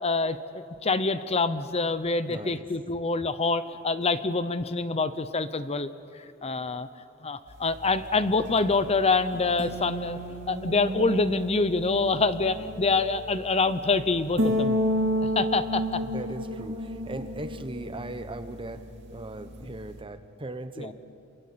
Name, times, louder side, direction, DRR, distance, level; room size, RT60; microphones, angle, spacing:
voice 1, 0.0-5.9 6.4-6.9 7.2-10.2 10.5-14.8 15.4-16.0 20.8-20.9, left 3 dB, 30° left, 12 dB, 0.8 m, -26 dB
voice 2, 2.3-2.7 16.0-20.9, right 2 dB, 25° right, 10 dB, 1.1 m, -38 dB
sound 1, 7.5-20.0, equal, 60° right, 2.9 m, -32 dB
28.0 x 23.5 x 8.6 m, 2.6 s
head